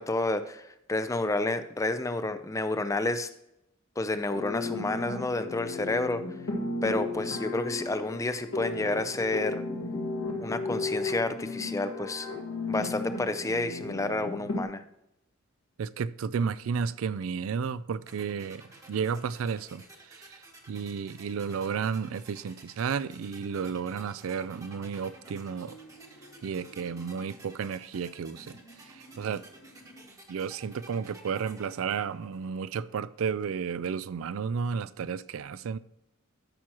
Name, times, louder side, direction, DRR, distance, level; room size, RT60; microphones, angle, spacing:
voice 1, 0.0-3.3 4.0-6.2 6.8-9.6 10.4-12.3 12.7-14.8, left 2 dB, 15° left, 0.4 m, -30 dB
sound 1, 4.3-14.6, left 3 dB, 85° left, 1.9 m, -35 dB
voice 2, 15.8-25.8 26.4-28.6 28.8-29.4 30.3-35.8, right 6 dB, 70° right, 0.4 m, -32 dB
sound 2, 18.1-33.0, right 2 dB, 15° right, 1.1 m, -53 dB
sound 3, 25.1-27.4 28.0-30.2, right 1 dB, 50° left, 1.2 m, -54 dB
13.0 x 6.1 x 2.9 m
head